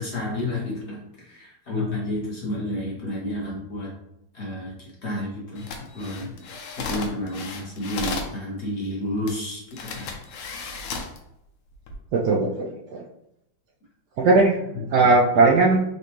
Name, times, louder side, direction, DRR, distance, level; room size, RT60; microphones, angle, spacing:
voice 1, 0.0-3.9 4.3-4.7 5.0-10.1 14.7-15.1, left 1 dB, 45° left, -4 dB, 1.0 m, -31 dB
sound 1, 5.6-8.4 9.3-9.4 9.7-11.2 11.7-12.0, left 4 dB, 90° left, 1.5 m, -34 dB
voice 2, 12.1-13.0 14.2-14.6 14.9-15.8, right 3 dB, 85° right, -1 dB, 0.9 m, -18 dB
4.3 x 2.5 x 2.9 m, 0.82 s
omnidirectional pair, 2.3 m